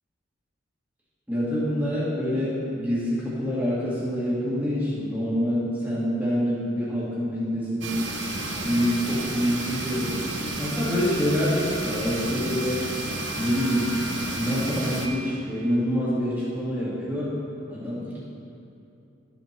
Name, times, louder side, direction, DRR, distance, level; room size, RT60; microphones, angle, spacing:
voice 1, 1.3-8.0 8.6-10.1 10.6-12.9 13.4-14.0 14.4-17.4 17.7-18.2, equal, 5° right, -12 dB, 2.0 m, -26 dB
sound 1, 7.8-15.1, right 1 dB, 65° right, 1.0 m, -31 dB
12.5 x 7.4 x 4.4 m, 2.8 s
head